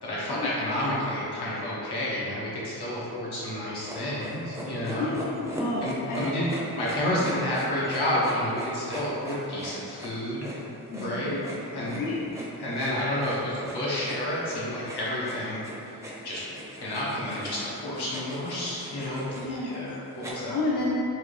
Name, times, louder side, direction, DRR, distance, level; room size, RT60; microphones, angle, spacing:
voice 1, 0.0-5.1 5.8-6.4 6.8-10.5 11.0-11.3 11.7-12.0 12.6-16.0 16.2-16.4 16.8-20.5, left 1 dB, 85° left, -7 dB, 1.2 m, -30 dB
sound 1, 3.8-20.3, right 1 dB, 10° right, 0.4 m, -40 dB
voice 2, 4.9-6.3 7.2-7.3 10.9-11.4 11.8-12.2 19.3-19.8 20.5-21.0, left 2 dB, 55° left, -6 dB, 0.5 m, -31 dB
4.6 x 2.6 x 3.2 m, 2.8 s
wide cardioid pair, 150°, 38 cm